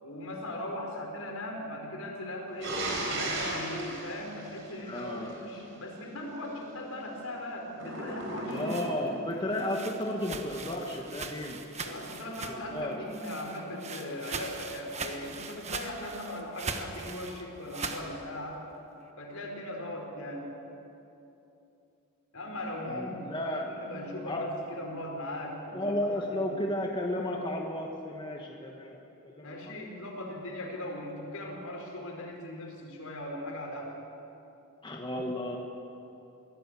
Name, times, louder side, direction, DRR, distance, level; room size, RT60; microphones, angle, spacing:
voice 1, 0.0-8.7 11.8-18.6 19.2-20.5 22.3-26.5 29.4-33.9, left 1 dB, 75° left, 0 dB, 4.8 m, -39 dB
sound 1, 2.6-5.3 7.7-9.2, right 1 dB, 55° right, 5.1 m, -35 dB
voice 2, 4.9-5.4 8.5-11.6 12.5-13.0 22.9-23.7 24.3-24.5 25.7-29.0 29.2-29.9 34.8-35.6, left 1 dB, 20° left, 0 dB, 1.4 m, -33 dB
sound 2, 8.3-12.8 13.1-18.1, right 4 dB, 30° right, 1.3 m, -40 dB
23.0 x 16.5 x 8.4 m, 2.9 s
head